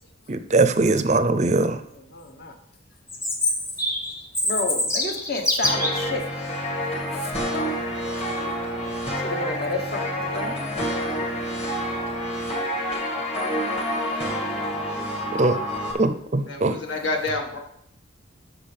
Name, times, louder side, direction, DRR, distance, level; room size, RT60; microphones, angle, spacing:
voice 1, 0.3-1.8 15.4-15.6 16.0-16.7, right 3 dB, 35° right, 10 dB, 0.5 m, -21 dB
voice 2, 2.0-2.5 4.4-6.2 7.5-7.7 9.2-10.5 16.9-17.0, left 2 dB, 50° left, 4 dB, 1.2 m, -31 dB
Chirp tweet, 3.1-6.1, left 1 dB, 15° left, 1.4 m, -25 dB
sound 1, 5.6-15.9, equal, 30° left, 1.8 m, -28 dB
voice 3, 16.4-17.6, left 2 dB, 70° left, 2 dB, 1.7 m, -28 dB
14.0 x 6.0 x 3.4 m, 0.74 s
head